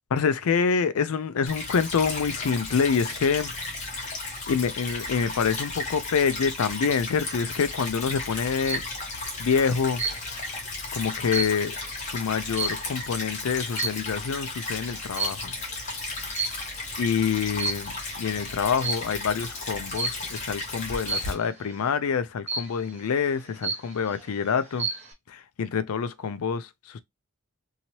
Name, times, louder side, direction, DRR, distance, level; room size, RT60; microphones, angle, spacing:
voice 1, 0.1-3.6 4.0-4.2 4.5-8.8 9.4-10.0 10.9-15.6 17.0-24.9 25.3-27.0, left 6 dB, 85° left, 0.4 m, -26 dB
Stream / Trickle dribble, 1.5-21.3, left 2 dB, 35° left, 1.0 m, -34 dB
sound 1, 8.3-8.9 10.0-10.5 10.9-13.2 13.7-14.2 15.2-15.6 16.4-17.0 17.4-18.1 18.8-19.2 20.0-20.4 21.1-21.5 22.5-23.0 23.4-23.5 23.6-24.2 24.6-25.1, right 4 dB, 30° right, 0.9 m, -31 dB
2.8 x 2.8 x 2.9 m
head